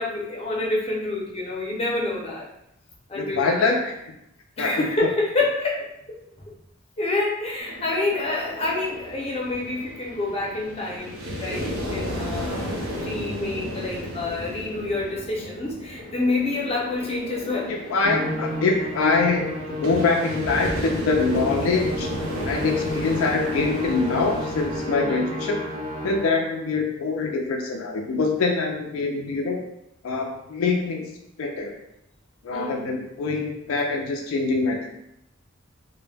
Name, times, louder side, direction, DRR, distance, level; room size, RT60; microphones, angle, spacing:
voice 1, 0.0-2.5 3.1-3.8 4.6-5.9 7.0-12.6 12.9-17.7 24.9-25.3 32.5-32.9, left 2 dB, 30° left, -3 dB, 0.5 m, -27 dB
voice 2, 3.1-4.0 4.6-5.1 17.7-22.1 22.5-25.7 26.0-29.6 30.0-31.1 31.4-31.7 32.4-34.8, left 3 dB, 90° left, 2 dB, 0.4 m, -24 dB
sound 1, 7.6-25.0, equal, 85° right, 0.6 m, -34 dB
Musical instrument, 18.0-26.5, left 1 dB, 35° right, 0.4 m, -32 dB
2.1 x 2.1 x 3.2 m, 0.82 s
head